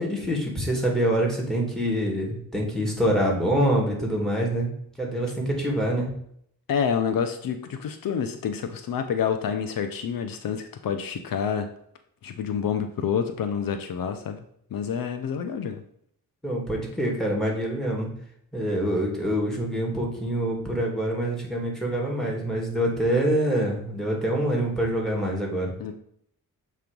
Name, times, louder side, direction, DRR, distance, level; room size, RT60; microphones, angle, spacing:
voice 1, 0.0-4.7 5.0-6.1 16.4-18.1 18.5-25.7, right 1 dB, ahead, -1 dB, 2.4 m, -25 dB
voice 2, 6.7-11.7 12.2-14.4 14.7-15.8 25.8-25.9, left 7 dB, 75° left, 8 dB, 0.7 m, -28 dB
6.9 x 3.2 x 5.2 m, 0.69 s
cardioid pair, 75°, 35 cm